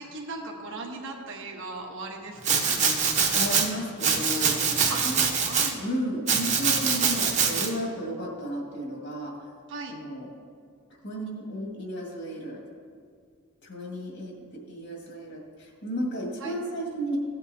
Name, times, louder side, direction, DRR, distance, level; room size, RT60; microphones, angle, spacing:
voice 1, 0.0-2.8 4.9-5.0 5.4-5.9 9.7-10.0 16.4-16.6, right 3 dB, 60° right, 0 dB, 1.2 m, -38 dB
Domestic sounds home sounds, 2.4-3.7 4.0-5.7 6.3-7.7, right 6 dB, 35° right, 1.1 m, -24 dB
voice 2, 2.8-5.2 5.8-9.3 9.9-10.3 11.0-12.6 13.6-17.2, equal, 50° left, -2 dB, 2.1 m, -33 dB
16.5 x 8.0 x 2.9 m, 2.1 s
head